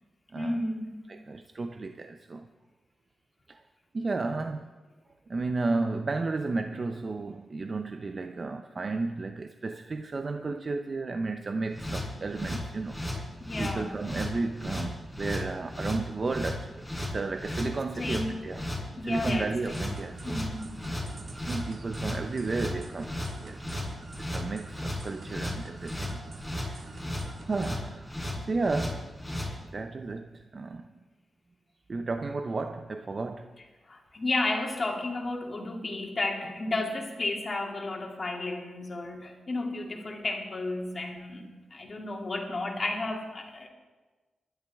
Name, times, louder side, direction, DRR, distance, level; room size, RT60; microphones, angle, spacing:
voice 1, 0.3-1.0 13.4-14.0 18.0-18.5 19.0-19.8 20.2-20.8 33.9-43.7, left 2 dB, 40° left, 2.5 m, -33 dB
voice 2, 1.1-2.5 3.5-3.6 3.9-4.7 5.3-13.0 13.6-18.6 19.0-20.5 21.5-23.9 24.2-26.2 26.7-26.9 27.5-28.1 28.5-29.1 29.7-30.9 31.9-33.6, right 3 dB, 40° right, 0.7 m, -33 dB
sound 1, 11.7-29.5, left 1 dB, ahead, 4.4 m, -35 dB
sound 2, 19.7-27.7, right 3 dB, 60° right, 1.8 m, -47 dB
24.0 x 11.5 x 3.6 m
wide cardioid pair, 95°, 0 cm